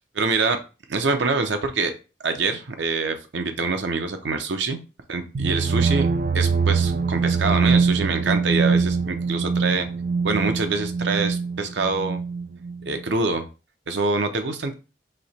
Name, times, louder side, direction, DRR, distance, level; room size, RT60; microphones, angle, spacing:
voice 1, 0.1-0.6 0.9-1.9 2.2-4.8 5.1-6.1 6.3-9.9 10.2-12.2 12.9-13.4 13.9-14.7, right 4 dB, 85° right, 7 dB, 0.7 m, -25 dB
sound 1, 5.3-13.0, right 5 dB, 50° right, 0.3 m, -23 dB
3.2 x 2.9 x 4.1 m, 0.32 s
head